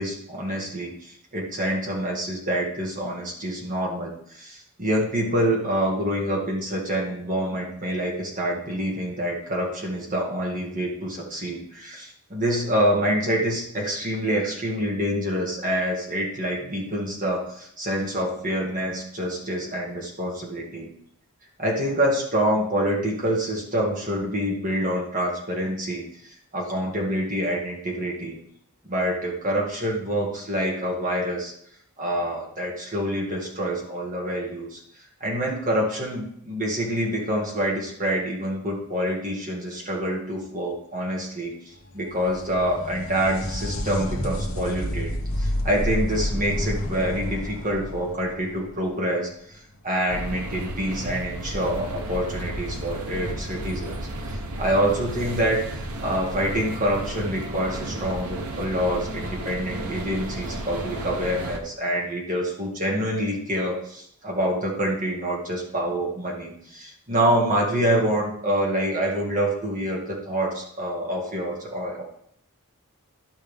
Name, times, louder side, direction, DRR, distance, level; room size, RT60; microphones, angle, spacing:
voice 1, 0.0-20.9 21.6-28.4 28.8-31.5 32.0-34.8 35.2-41.5 41.9-45.1 45.4-49.6 49.8-54.0 54.3-72.0, equal, 35° right, -2 dB, 2.2 m, -26 dB
sound 1, 41.9-49.4 52.8-52.9 54.0-54.1, left 1 dB, 65° left, 1.0 m, -30 dB
sound 2, 50.1-61.6, right 1 dB, 80° right, 1.1 m, -33 dB
12.5 x 5.5 x 3.6 m, 0.68 s
head